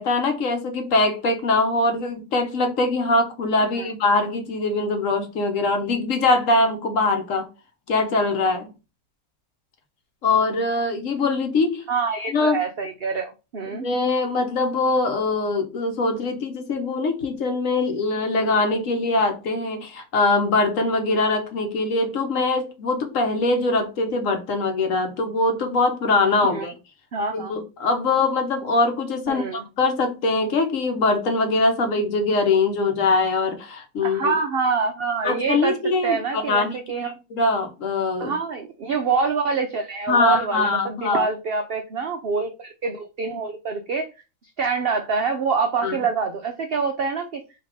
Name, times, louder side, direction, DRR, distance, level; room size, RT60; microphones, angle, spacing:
voice 1, 0.0-7.5 7.9-8.7 10.2-11.8 12.3-12.6 13.7-26.7 27.3-34.3 35.2-38.3 40.1-41.3 45.8-46.0, left 3 dB, 60° left, 1.1 m, -22 dB
voice 2, 11.9-13.9 26.5-26.7 27.1-27.5 29.3-29.6 34.0-35.8 36.0-37.1 38.2-44.1 44.6-47.4, right 5 dB, 75° right, 0.5 m, -26 dB
3.5 x 2.8 x 4.7 m
omnidirectional pair, 1.6 m